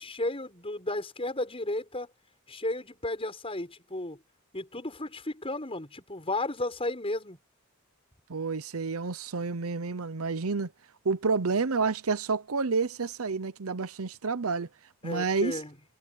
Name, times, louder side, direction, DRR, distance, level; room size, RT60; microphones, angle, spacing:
voice 1, 0.0-2.1 2.5-4.2 4.5-7.4 15.0-15.7, left 2 dB, 25° left, 6.8 m, -33 dB
voice 2, 8.3-10.7 11.0-14.7 15.0-15.6, right 4 dB, 85° right, 0.8 m, -29 dB
head